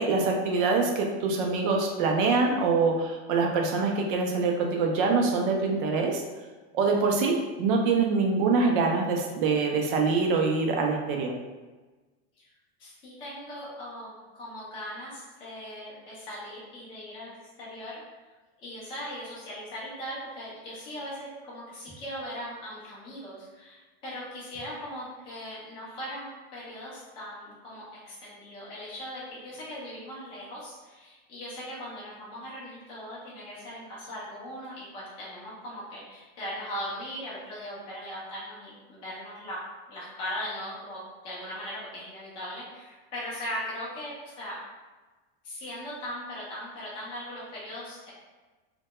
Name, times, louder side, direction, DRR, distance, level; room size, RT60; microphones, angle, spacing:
voice 1, 0.0-6.2 6.7-11.3, right 4 dB, 55° right, 1 dB, 0.4 m, -25 dB
voice 2, 12.8-18.0 18.6-39.6 39.9-44.6 45.4-48.1, equal, 15° left, -8 dB, 0.4 m, -39 dB
2.1 x 2.1 x 2.8 m, 1.3 s
supercardioid pair, 180°, 32 cm